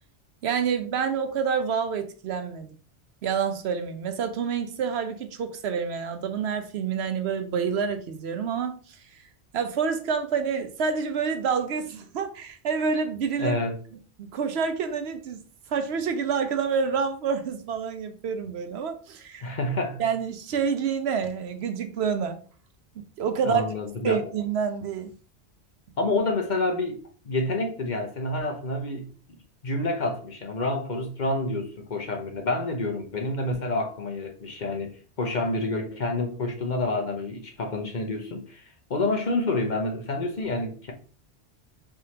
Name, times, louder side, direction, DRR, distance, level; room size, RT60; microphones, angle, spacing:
voice 1, 0.4-2.7 3.2-9.2 9.5-13.6 14.2-15.4 15.7-19.5 20.0-22.4 23.2-23.6 24.0-25.1, right 6 dB, 70° right, 0.9 m, -28 dB
voice 2, 13.4-13.7 19.4-20.0 23.4-24.2 26.0-27.0 27.2-29.1 29.6-38.6 38.9-40.9, left 2 dB, 45° left, 0.8 m, -28 dB
4.6 x 3.5 x 2.8 m
omnidirectional pair, 1.2 m